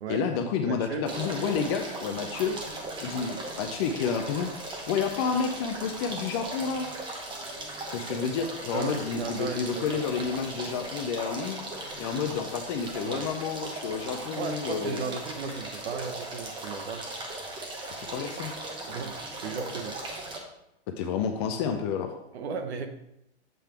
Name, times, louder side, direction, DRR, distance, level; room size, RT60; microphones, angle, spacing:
voice 1, 0.1-2.6 3.0-4.5 4.9-6.9 7.9-11.6 12.0-15.0 17.9-18.5 21.0-22.1, left 6 dB, 25° left, 5 dB, 0.4 m, -30 dB
voice 2, 0.6-1.1 8.7-10.2 13.0-13.3 14.3-17.1 18.9-20.0 22.3-22.9, right 5 dB, 65° right, 7 dB, 1.0 m, -35 dB
sound 1, 1.1-20.4, right 2 dB, 15° right, 0.9 m, -38 dB
7.6 x 3.3 x 4.5 m, 0.83 s
hypercardioid pair, 135°, 34 cm